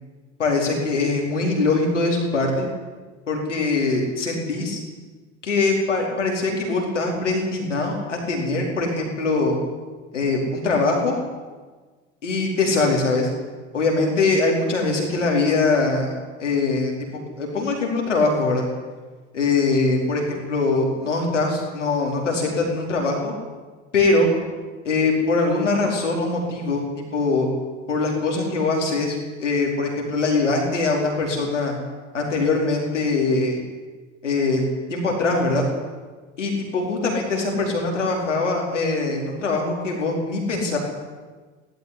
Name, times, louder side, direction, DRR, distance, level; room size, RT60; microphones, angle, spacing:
voice 1, 0.4-2.7 3.3-4.8 5.4-9.6 10.1-11.1 12.2-13.3 13.7-16.1 16.4-18.7 19.3-23.3 23.9-24.3 24.8-26.8 27.1-27.5 27.9-31.7 32.1-33.6 34.2-34.6 34.9-35.6 36.4-40.8, left 3 dB, 80° left, 0 dB, 4.7 m, -22 dB
16.5 x 15.5 x 9.9 m, 1.4 s
figure-of-eight pair, 65°, 36 cm